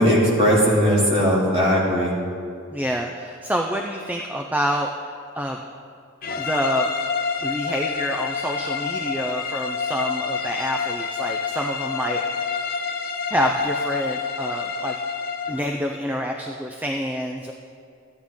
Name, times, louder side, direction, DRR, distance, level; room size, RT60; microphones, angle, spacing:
voice 1, 0.0-2.1, equal, 30° right, -5 dB, 2.5 m, -18 dB
voice 2, 2.7-5.6 6.4-6.9 7.4-12.5 13.3-14.9 15.5-17.5, equal, 10° right, 2 dB, 0.4 m, -27 dB
sound 1, 6.2-15.7, left 5 dB, 45° left, 0.7 m, -28 dB
14.0 x 9.4 x 3.7 m, 2.4 s
head